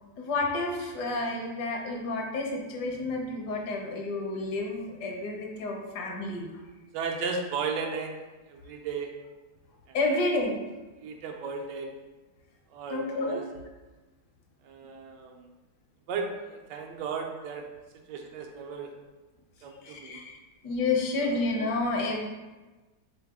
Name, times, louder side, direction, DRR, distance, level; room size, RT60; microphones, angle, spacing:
voice 1, 0.2-6.5 9.9-10.6 12.9-13.4 19.8-20.3 20.6-22.3, left 2 dB, 75° left, 1 dB, 1.4 m, -30 dB
voice 2, 6.9-8.1 8.5-9.1 9.9-10.0 11.0-11.9 12.7-13.4 14.6-15.5 16.1-17.7 18.1-18.9 19.6-20.2 21.2-21.4, right 5 dB, 85° right, 3 dB, 1.3 m, -35 dB
3.9 x 3.8 x 3.6 m, 1.2 s
omnidirectional pair, 1.9 m